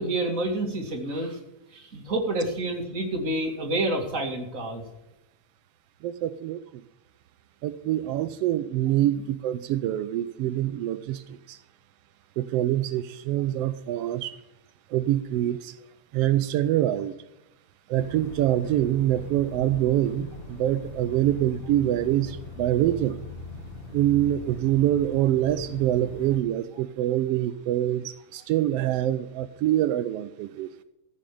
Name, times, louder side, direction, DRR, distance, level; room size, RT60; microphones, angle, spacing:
voice 1, 0.0-1.4 1.7-4.8, right 1 dB, 30° right, 3 dB, 2.3 m, -28 dB
voice 2, 6.0-6.6 7.6-11.2 11.5-11.6 12.4-14.4 14.9-15.7 16.1-17.2 17.9-23.2 23.9-30.7, right 13 dB, 85° right, 13 dB, 1.3 m, -25 dB
sound 1, 18.0-26.4, left 3 dB, 70° left, 2.6 m, -41 dB
14.0 x 6.4 x 8.4 m, 0.94 s
omnidirectional pair, 3.4 m